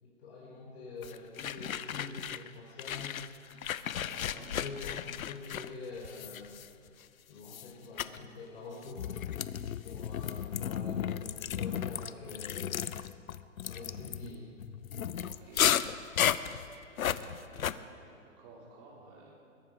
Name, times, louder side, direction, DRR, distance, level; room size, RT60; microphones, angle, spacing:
voice 1, 0.0-3.1 4.2-6.6 7.3-9.2 9.8-13.1 13.6-14.4, left 3 dB, 50° left, -4 dB, 3.9 m, -46 dB
sound 1, 1.0-2.5 2.8-7.0 7.4-7.7 8.0-8.2 8.8-17.7, left 9 dB, 75° left, 0.7 m, -34 dB
voice 2, 3.9-4.5 15.2-16.6 16.9-19.3, right 3 dB, 30° right, -3 dB, 4.3 m, -54 dB
22.5 x 12.0 x 5.1 m, 2.4 s
hypercardioid pair, 145°, 41 cm